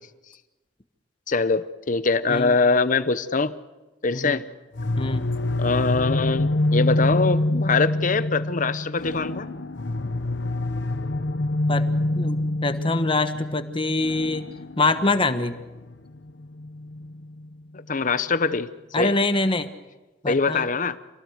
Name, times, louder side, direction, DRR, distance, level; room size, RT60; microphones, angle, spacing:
voice 1, 1.3-3.6 4.0-4.4 5.6-9.5 17.9-18.7 19.0-19.1 20.3-21.0, left 4 dB, 45° left, 14 dB, 0.8 m, -23 dB
sound 1, 4.7-17.5, left 2 dB, 75° left, 1.0 m, -26 dB
voice 2, 11.7-14.5 14.8-15.5 18.9-19.7 20.2-20.7, left 2 dB, 30° left, 10 dB, 1.3 m, -24 dB
27.0 x 18.0 x 8.0 m, 1.1 s
head